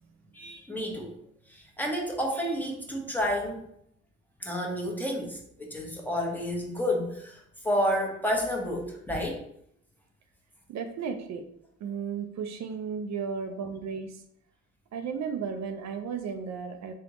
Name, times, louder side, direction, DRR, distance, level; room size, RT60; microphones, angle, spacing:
voice 1, 0.3-1.1 1.5-3.6 4.4-9.4, equal, 5° left, -1 dB, 1.0 m, -30 dB
voice 2, 10.7-11.4 11.8-14.2 14.9-16.9, right 6 dB, 65° right, 5 dB, 0.5 m, -34 dB
3.6 x 3.4 x 3.0 m, 0.72 s
cardioid pair, 90°, 30 cm